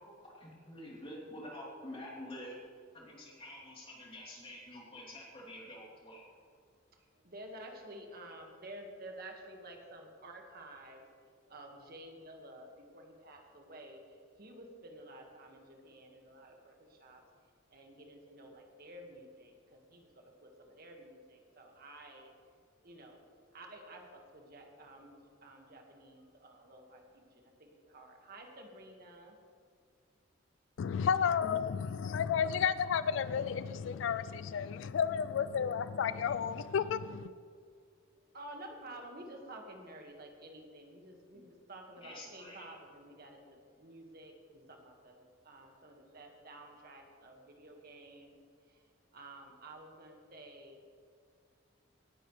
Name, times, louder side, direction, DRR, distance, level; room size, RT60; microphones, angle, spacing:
voice 1, 0.0-2.5 2.9-6.2 41.3-41.4 42.0-42.7, left 1 dB, 30° left, -4 dB, 3.3 m, -48 dB
voice 2, 7.3-14.0 14.4-17.2 17.7-22.3 22.8-23.2 23.5-29.4 38.3-48.4 49.1-50.8, right 1 dB, 50° right, 2 dB, 1.7 m, -51 dB
voice 3, 30.8-37.3, left 7 dB, 70° left, 14 dB, 0.3 m, -32 dB
18.5 x 10.0 x 3.2 m, 2.2 s
head